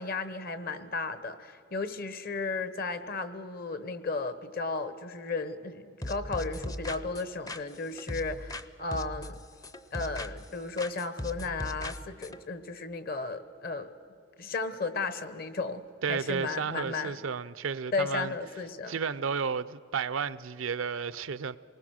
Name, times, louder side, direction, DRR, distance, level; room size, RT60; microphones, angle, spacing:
voice 1, 0.0-9.4 9.9-13.9 14.4-15.8 16.1-17.2 17.9-19.0, left 3 dB, 50° left, 1.0 m, -34 dB
sound 1, 6.0-8.7 8.9-10.5 10.8-12.4, left 1 dB, 20° left, 0.5 m, -38 dB
voice 2, 16.0-18.3 18.9-21.6, right 6 dB, 85° right, 0.5 m, -32 dB
28.0 x 20.0 x 6.4 m
head